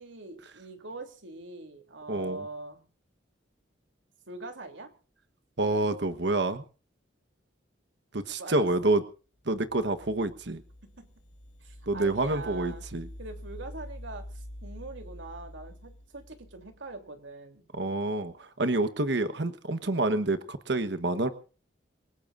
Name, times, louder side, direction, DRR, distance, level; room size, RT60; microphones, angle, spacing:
voice 1, 0.0-2.8 4.3-4.9 8.4-8.9 11.0-11.1 11.6-12.8 13.2-17.6, right 3 dB, 80° right, 5 dB, 3.2 m, -43 dB
voice 2, 2.1-2.4 5.6-6.6 8.1-9.0 9.5-10.6 11.9-13.1 17.7-21.3, right 2 dB, 65° right, 10 dB, 1.2 m, -28 dB
sound 1, 9.5-17.0, equal, 40° left, 6.9 m, -46 dB
27.5 x 17.5 x 2.6 m, 0.37 s
head